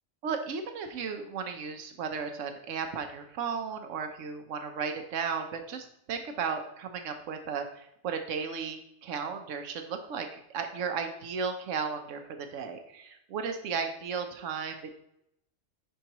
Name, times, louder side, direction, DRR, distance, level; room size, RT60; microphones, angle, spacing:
voice 1, 0.2-14.9, right 6 dB, 90° right, 6 dB, 1.1 m, -35 dB
10.0 x 4.5 x 3.0 m, 0.77 s
omnidirectional pair, 1.3 m